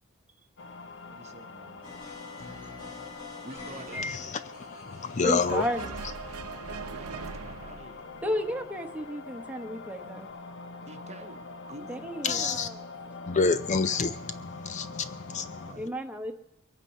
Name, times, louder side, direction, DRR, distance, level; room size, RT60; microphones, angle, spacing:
sound 1, 0.6-15.7, left 4 dB, 55° left, 0.9 m, -44 dB
voice 1, 1.1-2.4 3.4-4.1 6.9-8.0 10.9-11.4 11.7-12.1 15.7-16.0, right 2 dB, 30° right, 1.1 m, -47 dB
sound 2, 1.8-7.6, left 3 dB, 75° left, 7.4 m, -47 dB
voice 2, 3.9-4.4 4.7-5.6 12.2-12.7 13.3-15.7, left 4 dB, 35° left, 0.4 m, -28 dB
voice 3, 5.2-5.9 8.2-10.3 11.9-12.7 15.8-16.3, equal, 5° right, 1.1 m, -32 dB
sound 3, 5.5-9.0, right 5 dB, 80° right, 0.8 m, -41 dB
22.5 x 9.0 x 5.6 m
head